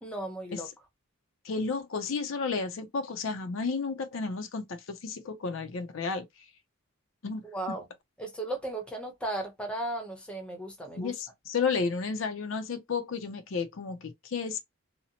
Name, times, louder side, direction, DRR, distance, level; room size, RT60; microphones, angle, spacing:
voice 1, 0.0-0.7 7.4-7.9 8.2-11.1, right 1 dB, 5° left, 0.7 m, -36 dB
voice 2, 1.4-6.3 7.2-7.8 11.0-14.6, left 5 dB, 65° left, 0.5 m, -32 dB
2.8 x 2.0 x 2.7 m
head